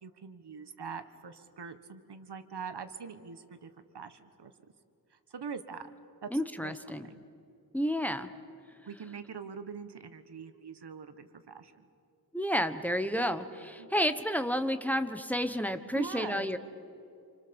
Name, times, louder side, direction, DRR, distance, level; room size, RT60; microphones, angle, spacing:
voice 1, 0.0-4.5 5.3-5.8 6.2-6.3 6.6-6.7 7.0-7.2 8.8-11.8 13.8-13.9 15.9-16.5, right 6 dB, 85° right, 10 dB, 1.5 m, -43 dB
voice 2, 6.3-7.1 7.7-8.3 12.3-16.6, equal, 5° left, 9 dB, 1.2 m, -31 dB
28.5 x 27.5 x 7.1 m, 2.5 s
wide cardioid pair, 105°, 39 cm